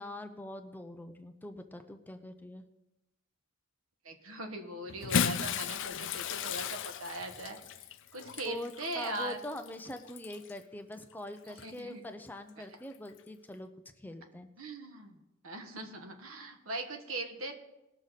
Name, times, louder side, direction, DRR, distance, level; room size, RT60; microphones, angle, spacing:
voice 1, 0.0-2.6 8.4-13.7 14.0-14.5, left 1 dB, 10° left, 6 dB, 0.7 m, -43 dB
voice 2, 4.0-7.9 8.1-9.4 11.6-12.0 12.6-12.7 14.6-15.2 15.4-17.5, right 2 dB, 75° right, 5 dB, 1.5 m, -40 dB
Bathtub (filling or washing) / Splash splatter, 4.9-10.6 11.5-11.6 13.1-13.2, left 7 dB, 65° left, 0.5 m, -35 dB
19.5 x 6.5 x 4.1 m, 0.97 s
head